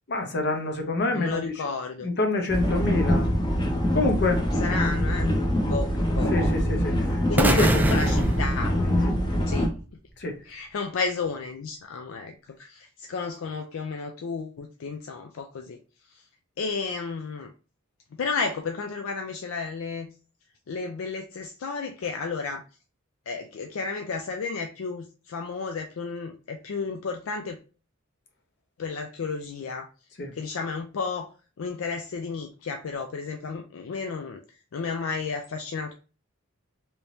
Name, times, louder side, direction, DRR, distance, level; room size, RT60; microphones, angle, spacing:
voice 1, 0.1-1.4 2.0-3.3 3.9-4.5 6.3-8.0 8.8-9.2 10.2-10.4 30.2-30.3, left 2 dB, 55° left, 0.8 m, -27 dB
voice 2, 1.1-2.1 4.6-5.4 5.6-6.4 7.3-8.8 9.5-9.7 10.4-15.8 16.1-16.2 16.6-17.5 18.1-20.1 20.7-22.6 23.3-27.6 28.8-29.9 30.3-31.3 31.6-34.4 34.7-35.9, left 4 dB, 75° left, 0.4 m, -32 dB
sound 1, 2.5-9.7, equal, 20° left, 0.8 m, -24 dB
sound 2, 7.4-9.5, right 1 dB, 10° right, 0.3 m, -25 dB
3.4 x 2.9 x 2.7 m
head